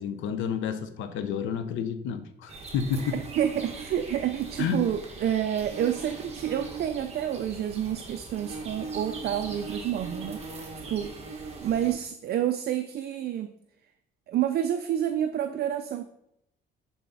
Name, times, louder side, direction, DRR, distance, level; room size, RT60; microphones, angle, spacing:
voice 1, 0.0-3.2 4.6-4.9, left 7 dB, 85° left, 10 dB, 0.9 m, -30 dB
sound 1, 2.5-11.9, right 3 dB, 35° right, 1.7 m, -40 dB
voice 2, 3.1-10.4 10.9-11.1 11.6-13.5 14.3-16.0, right 10 dB, 55° right, 8 dB, 0.5 m, -29 dB
11.0 x 4.2 x 4.0 m, 0.80 s
cardioid pair, 120°, 20 cm